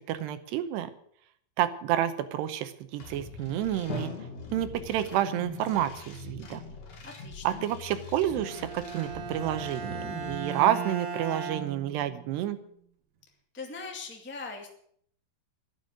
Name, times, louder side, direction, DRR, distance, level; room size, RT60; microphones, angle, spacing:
voice 1, 0.1-0.9 1.6-4.1 4.5-6.6 7.4-12.6, right 12 dB, 80° right, 11 dB, 2.9 m, -29 dB
sound 1, 3.0-10.4, left 4 dB, 45° left, 2.7 m, -44 dB
Drum, 3.9-5.8, left 3 dB, 60° left, 0.9 m, -41 dB
voice 2, 7.0-7.6 13.5-14.7, left 4 dB, 5° left, 2 dB, 0.9 m, -40 dB
Bowed string instrument, 8.3-12.4, right 5 dB, 65° right, 2.2 m, -37 dB
12.0 x 11.5 x 7.8 m, 0.65 s
omnidirectional pair, 5.0 m